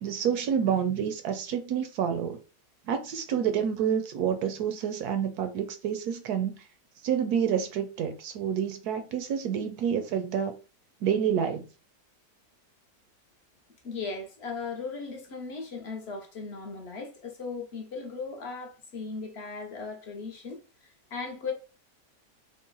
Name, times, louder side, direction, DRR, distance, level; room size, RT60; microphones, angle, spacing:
voice 1, 0.0-2.4 2.9-6.5 7.0-10.5 11.0-11.7, right 8 dB, 70° right, 1.0 m, -28 dB
voice 2, 13.8-21.5, left 4 dB, 55° left, 0.8 m, -37 dB
3.8 x 2.2 x 3.8 m
omnidirectional pair, 1.9 m